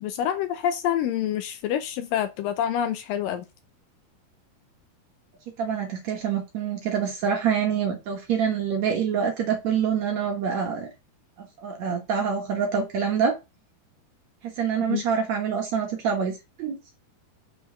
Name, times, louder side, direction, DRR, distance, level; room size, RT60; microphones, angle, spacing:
voice 1, 0.0-3.5 14.9-15.0, left 10 dB, 80° left, 2.1 m, -27 dB
voice 2, 5.6-10.9 11.4-13.4 14.4-16.8, right 7 dB, 60° right, 2.1 m, -26 dB
6.4 x 4.5 x 6.0 m
omnidirectional pair, 4.3 m